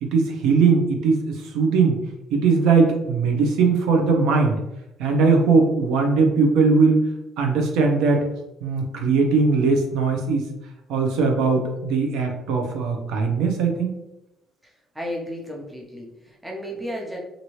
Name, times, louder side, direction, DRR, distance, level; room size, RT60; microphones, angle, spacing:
voice 1, 0.0-2.0 2.3-4.6 5.0-7.0 7.4-8.2 8.6-10.5 10.9-13.9, right 4 dB, 85° right, 2 dB, 0.6 m, -20 dB
voice 2, 14.9-17.2, equal, 10° right, -2 dB, 0.6 m, -33 dB
2.8 x 2.6 x 3.0 m, 0.92 s
cardioid pair, 130°, 0 cm